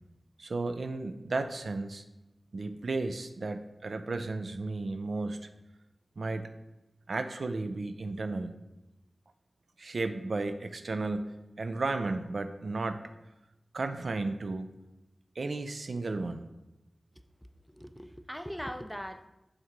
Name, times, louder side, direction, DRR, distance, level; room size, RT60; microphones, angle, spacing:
voice 1, 0.4-2.0 2.5-5.5 6.2-6.5 7.1-8.5 9.8-13.1 13.7-14.7 15.4-16.5, right 3 dB, 75° right, 9 dB, 0.3 m, -34 dB
voice 2, 17.2-19.3, equal, 5° left, 9 dB, 0.4 m, -41 dB
6.3 x 3.7 x 4.6 m, 0.99 s
wide cardioid pair, 65°, 0 cm